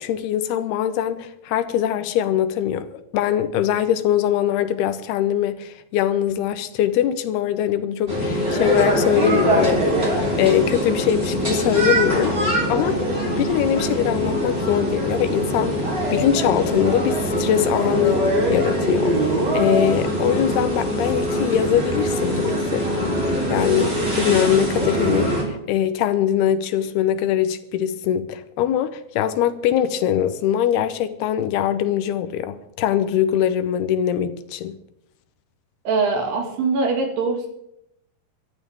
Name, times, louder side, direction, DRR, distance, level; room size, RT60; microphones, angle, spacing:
voice 1, 0.0-12.4 12.7-13.0 13.4-23.2 23.5-34.8, left 10 dB, 80° left, 2.7 m, -22 dB
sound 1, 8.1-25.4, equal, 15° right, 3.5 m, -22 dB
voice 2, 35.9-37.5, right 4 dB, 75° right, 4.2 m, -22 dB
23.5 x 12.5 x 3.6 m
omnidirectional pair, 4.7 m